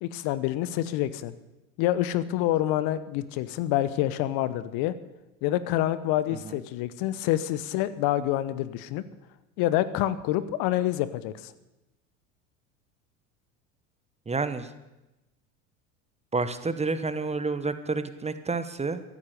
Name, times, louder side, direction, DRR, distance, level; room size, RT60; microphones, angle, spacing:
voice 1, 0.0-1.3 1.8-4.9 5.4-9.0 9.6-11.5, left 13 dB, 60° left, 15 dB, 1.0 m, -27 dB
voice 2, 14.3-14.7 16.3-19.0, right 3 dB, 15° right, 12 dB, 1.1 m, -29 dB
14.5 x 12.0 x 6.7 m, 0.99 s
hypercardioid pair, 80°, 42 cm